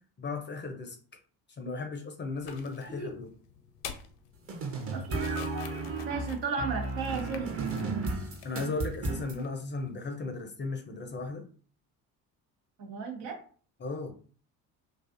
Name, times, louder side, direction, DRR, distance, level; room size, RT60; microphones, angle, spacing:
voice 1, 0.2-1.0 1.5-3.3 8.4-11.4 13.8-14.1, left 3 dB, 25° left, 4 dB, 0.4 m, -36 dB
sound 1, 2.4-10.0, left 7 dB, 65° left, 0.6 m, -49 dB
sound 2, 4.5-9.4, right 3 dB, 30° right, 0.6 m, -33 dB
voice 2, 4.9-5.7 6.1-7.5 12.8-13.4, right 5 dB, 85° right, 3 dB, 0.8 m, -35 dB
2.4 x 2.3 x 2.4 m, 0.43 s
hypercardioid pair, 55°, 49 cm